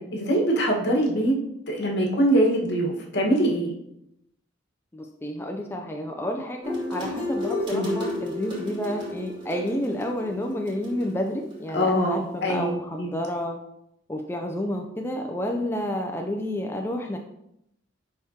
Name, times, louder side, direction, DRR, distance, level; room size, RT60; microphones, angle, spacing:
voice 1, 0.0-1.4 1.7-3.7 7.7-7.9 11.7-12.7 13.0-13.1, right 1 dB, 60° left, -1 dB, 1.4 m, -23 dB
voice 2, 4.9-13.6 14.1-17.2, left 1 dB, 10° left, 2 dB, 0.4 m, -30 dB
sound 1, 6.6-11.6, left 1 dB, 25° right, 2.3 m, -32 dB
10.5 x 3.6 x 2.8 m, 0.80 s
head